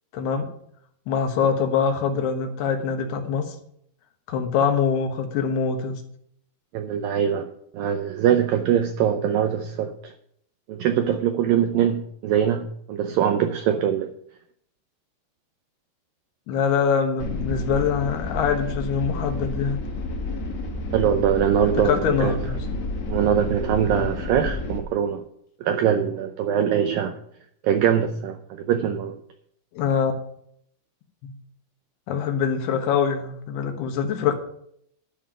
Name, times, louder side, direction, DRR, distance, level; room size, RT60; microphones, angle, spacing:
voice 1, 0.1-0.5 1.1-3.6 4.3-6.0 16.5-19.8 21.8-22.6 29.7-30.1 31.2-31.4 32.1-34.3, left 6 dB, 70° left, 5 dB, 3.1 m, -24 dB
voice 2, 6.7-7.5 7.7-10.1 10.7-14.1 20.9-22.4 23.1-25.2 25.6-27.2 27.6-29.2, right 9 dB, 85° right, 7 dB, 2.0 m, -22 dB
sound 1, 17.2-24.8, left 2 dB, 50° left, 2.4 m, -30 dB
12.0 x 5.6 x 8.8 m, 0.70 s
omnidirectional pair, 4.9 m